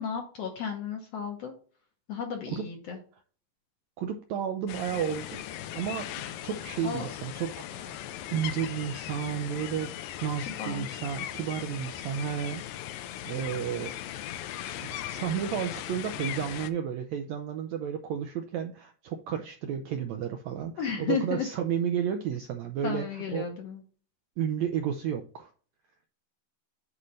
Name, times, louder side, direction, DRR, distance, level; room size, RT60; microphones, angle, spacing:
voice 1, 0.0-1.5 2.1-3.0 6.8-7.1 10.5-11.0 20.8-21.5 22.8-23.8, left 7 dB, 65° left, 3 dB, 1.6 m, -33 dB
voice 2, 4.0-5.4 5.7-8.0 8.3-9.9 10.2-12.6 13.3-13.9 14.8-23.5 24.4-25.5, right 8 dB, 85° right, 6 dB, 1.6 m, -32 dB
sound 1, 4.7-16.7, left 12 dB, 85° left, 1.5 m, -38 dB
8.4 x 3.2 x 5.3 m, 0.42 s
omnidirectional pair, 3.8 m